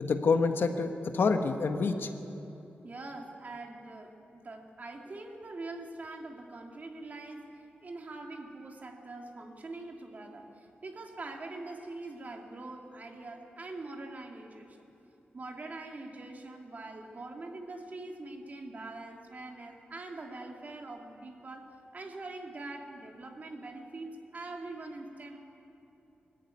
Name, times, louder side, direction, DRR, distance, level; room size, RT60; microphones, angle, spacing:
voice 1, 0.0-2.1, left 4 dB, 70° left, 6 dB, 1.4 m, -27 dB
voice 2, 2.8-14.8 15.3-25.4, right 2 dB, 45° right, 2 dB, 2.5 m, -43 dB
21.0 x 14.5 x 9.6 m, 2.9 s
wide cardioid pair, 100°, 4 cm